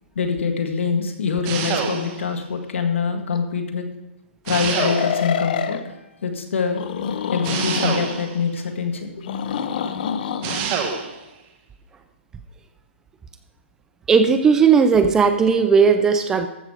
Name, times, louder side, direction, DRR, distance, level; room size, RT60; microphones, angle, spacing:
voice 1, 0.2-3.9 4.4-6.8 7.3-9.2, left 5 dB, 70° left, 4 dB, 1.8 m, -24 dB
sound 1, 1.4-2.4 4.5-5.4 7.4-8.5 10.4-11.2, right 6 dB, 25° right, 1.1 m, -26 dB
sound 2, 3.3-3.4 4.7-5.8 6.7-8.2 9.2-10.6, left 8 dB, 45° left, 0.8 m, -26 dB
voice 2, 14.1-16.5, right 5 dB, 10° right, 9 dB, 0.4 m, -16 dB
14.0 x 6.1 x 4.9 m, 0.99 s
hypercardioid pair, 160°, 7 cm